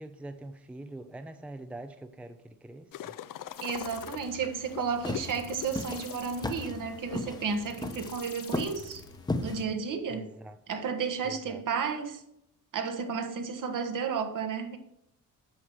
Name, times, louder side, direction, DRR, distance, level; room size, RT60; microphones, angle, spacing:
voice 1, 0.0-3.2 10.1-10.6 11.2-11.6, right 1 dB, 5° right, 0.5 m, -44 dB
sound 1, 2.9-8.0, left 11 dB, 65° left, 0.6 m, -44 dB
sound 2, 3.5-9.8, left 6 dB, 40° left, 1.3 m, -49 dB
voice 2, 3.6-9.0 9.4-10.3 10.7-12.2 12.7-14.8, right 6 dB, 65° right, 1.4 m, -32 dB
sound 3, 4.6-9.6, left 2 dB, 10° left, 0.9 m, -35 dB
9.1 x 6.1 x 6.5 m
cardioid pair, 120°, 35 cm